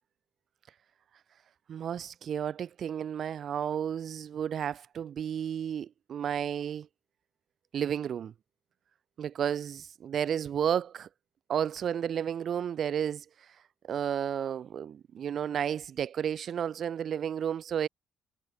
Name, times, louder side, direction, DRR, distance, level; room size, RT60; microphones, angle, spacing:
voice 1, 1.7-6.9 7.7-8.3 9.2-11.1 11.5-13.2 13.9-17.9, right 8 dB, 60° right, 5.2 m, -32 dB
cardioid pair, 90°, 0 cm